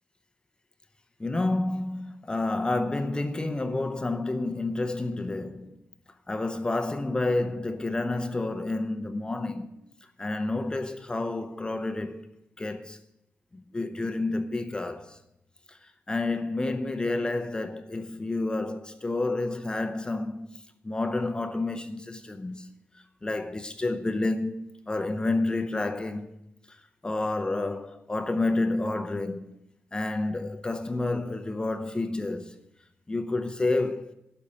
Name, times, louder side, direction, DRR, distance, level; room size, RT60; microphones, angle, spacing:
voice 1, 1.2-5.7 6.3-9.7 10.2-12.2 12.6-13.0 13.5-15.2 15.7-15.8 16.1-20.5 20.8-22.7 23.2-26.3 27.0-29.5 29.9-32.5 33.1-34.1, left 2 dB, 20° left, 0.7 m, -29 dB
12.0 x 5.5 x 8.5 m
wide cardioid pair, 130°, 5 cm